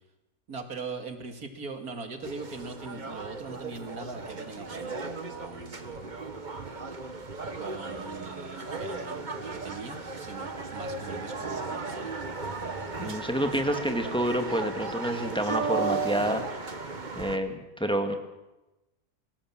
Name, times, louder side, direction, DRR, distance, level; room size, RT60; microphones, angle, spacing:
voice 1, 0.5-6.1 7.5-12.1, right 4 dB, 75° right, 6 dB, 2.7 m, -41 dB
sound 1, 2.2-17.4, right 4 dB, 30° right, 1.5 m, -35 dB
voice 2, 13.0-16.9 17.1-18.1, equal, 5° left, 5 dB, 1.8 m, -29 dB
25.0 x 16.5 x 7.4 m, 1.0 s
omnidirectional pair, 1.6 m